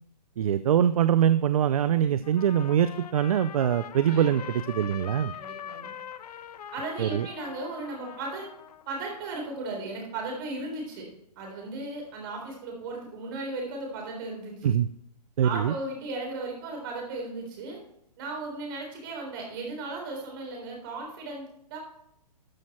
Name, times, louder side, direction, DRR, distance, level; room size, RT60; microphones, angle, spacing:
voice 1, 0.4-5.3 7.0-7.3 14.6-14.9 15.4-15.7, right 9 dB, 60° right, 14 dB, 0.5 m, -23 dB
Trumpet, 2.2-9.0, left 9 dB, 70° left, 0.6 m, -43 dB
voice 2, 5.3-5.9 6.7-8.5 8.9-11.1 11.4-14.6 15.4-17.8 18.2-21.8, right 2 dB, 30° right, 0 dB, 3.8 m, -36 dB
13.0 x 6.4 x 4.2 m, 0.75 s
hypercardioid pair, 165°, 21 cm